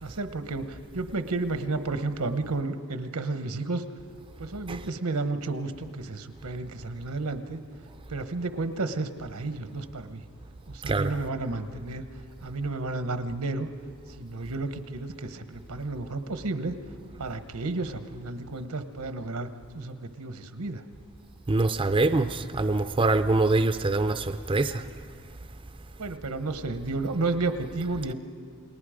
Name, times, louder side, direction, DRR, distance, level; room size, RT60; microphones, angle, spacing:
voice 1, 0.0-3.8 4.4-7.6 8.1-10.2 10.7-12.0 12.4-13.7 14.1-16.8 17.2-19.5 19.7-20.8 26.0-28.1, right 3 dB, 85° right, 9 dB, 1.1 m, -32 dB
voice 2, 21.5-24.8, right 2 dB, 20° right, 9 dB, 0.5 m, -24 dB
29.0 x 20.0 x 5.0 m, 2.1 s
head